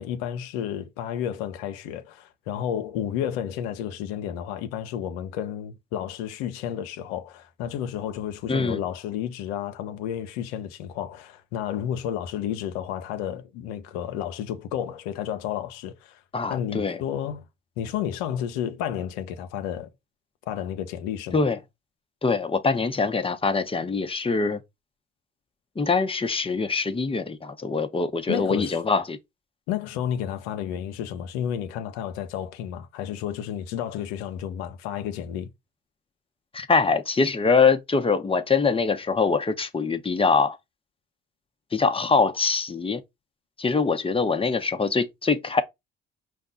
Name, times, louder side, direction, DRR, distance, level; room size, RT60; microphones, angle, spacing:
voice 1, 0.0-16.2 16.5-17.4 17.8-19.9 20.5-21.4 28.3-28.8 29.7-35.5, left 10 dB, 85° left, 0.6 m, -31 dB
voice 2, 8.5-8.8 16.3-17.0 21.3-21.6 22.2-24.6 25.8-29.2 36.5-40.6 41.7-43.0 43.6-45.6, left 4 dB, 20° left, 0.8 m, -23 dB
5.2 x 2.3 x 3.7 m
hypercardioid pair, 55°, 30 cm